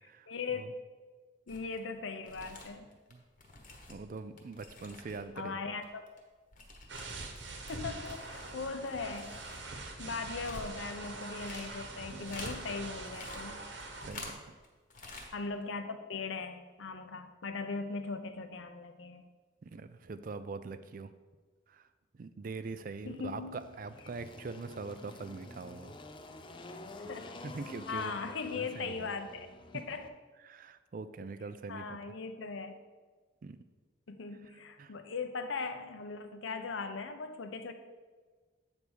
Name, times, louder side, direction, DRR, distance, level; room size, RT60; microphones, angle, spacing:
voice 1, 0.3-0.7 1.5-3.0 5.4-6.1 7.7-13.6 15.3-19.2 23.0-23.6 27.0-27.3 27.9-29.5 29.7-30.1 31.7-32.8 34.1-37.7, left 4 dB, 70° left, 8 dB, 0.6 m, -39 dB
sound 1, 1.5-1.8 2.1-5.4 5.6-12.6 12.9-14.7 14.9-15.3 15.6-15.7, left 2 dB, 40° left, 1.1 m, -49 dB
voice 2, 3.9-5.7 12.1-12.4 14.0-14.6 19.6-21.1 21.7-21.9 22.1-26.0 27.4-29.1 30.4-31.9 33.4-33.6 34.8-34.9, right 4 dB, 45° right, 12 dB, 0.3 m, -43 dB
sound 2, 6.9-14.1, right 3 dB, 60° right, 1.0 m, -43 dB
Engine, 22.7-30.1, left 2 dB, 25° left, 0.4 m, -49 dB
8.3 x 3.5 x 6.1 m, 1.4 s
head